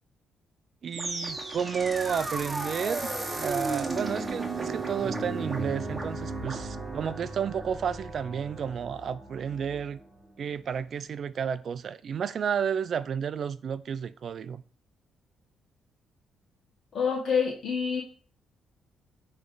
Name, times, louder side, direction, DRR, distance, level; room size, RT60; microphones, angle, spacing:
voice 1, 0.8-10.0 10.4-14.6, right 7 dB, 55° right, 0.5 m, -32 dB
sound 1, 0.9-10.1, right 2 dB, 15° right, 1.4 m, -35 dB
voice 2, 16.9-18.0, left 6 dB, 60° left, 1.4 m, -27 dB
9.6 x 3.3 x 3.9 m
cardioid pair, 90°, 0 cm